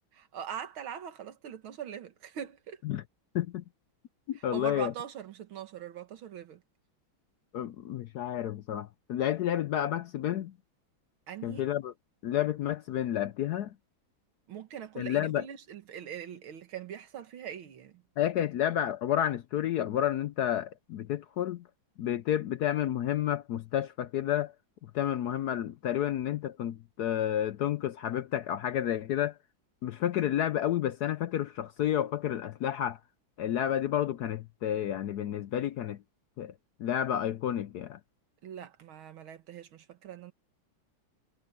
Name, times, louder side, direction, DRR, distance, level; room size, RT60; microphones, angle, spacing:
voice 1, 0.2-2.8 4.3-6.6 11.3-11.7 14.5-18.0 38.4-40.3, right 9 dB, 85° right, 2.3 m, -42 dB
voice 2, 4.3-4.9 7.5-10.5 11.4-11.9 12.2-13.7 15.0-15.4 18.2-21.6 22.0-24.5 24.9-29.4 29.8-33.0 33.4-36.0 36.4-36.5 36.8-38.0, left 11 dB, 70° left, 1.0 m, -30 dB
omnidirectional pair, 2.2 m